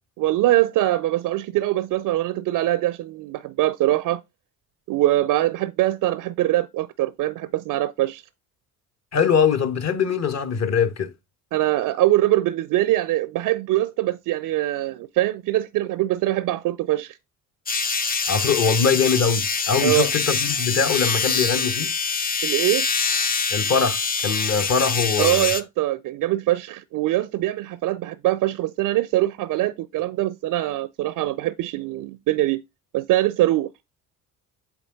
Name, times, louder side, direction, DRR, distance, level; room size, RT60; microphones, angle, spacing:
voice 1, 0.2-4.2 4.9-8.2 11.5-17.2 19.8-20.1 22.4-22.9 25.2-32.6 32.9-33.7, right 15 dB, 50° right, 0.5 m, -23 dB
voice 2, 9.1-11.1 18.3-21.9 23.5-25.5, left 6 dB, 40° left, 1.1 m, -22 dB
sound 1, 17.7-25.6, left 5 dB, 20° left, 0.5 m, -24 dB
8.1 x 3.5 x 3.6 m
figure-of-eight pair, 50°, 43 cm